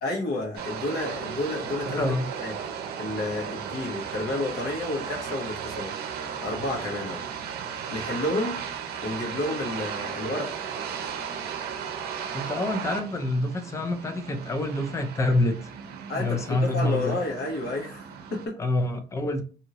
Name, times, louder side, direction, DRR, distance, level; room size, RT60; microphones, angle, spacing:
voice 1, 0.0-2.0 2.4-2.5 3.0-5.9 6.4-7.2 7.9-8.6 9.0-10.5 16.1-18.6, left 2 dB, 70° left, -1 dB, 1.2 m, -30 dB
sound 1, 0.5-18.5, right 7 dB, 70° right, 0.6 m, -35 dB
voice 2, 12.3-15.7 16.1-17.2 18.6-19.4, left 2 dB, 15° left, 6 dB, 0.5 m, -26 dB
2.7 x 2.6 x 2.9 m, 0.38 s
cardioid pair, 110°, 17 cm